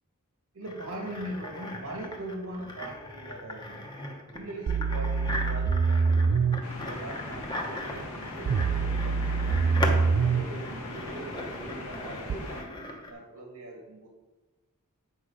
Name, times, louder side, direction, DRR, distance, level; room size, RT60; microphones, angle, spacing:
voice 1, 0.5-4.1 4.3-9.6 10.2-12.7 13.1-14.1, right 1 dB, 80° right, 1 dB, 1.6 m, -41 dB
sound 1, 0.6-13.1, left 1 dB, 20° left, 1.0 m, -38 dB
sound 2, 4.7-6.6 8.5-10.5 12.3-12.4, right 5 dB, 55° right, 0.3 m, -25 dB
sound 3, 6.6-12.6, left 1 dB, 70° left, 1.4 m, -40 dB
8.3 x 5.2 x 4.9 m, 1.1 s
head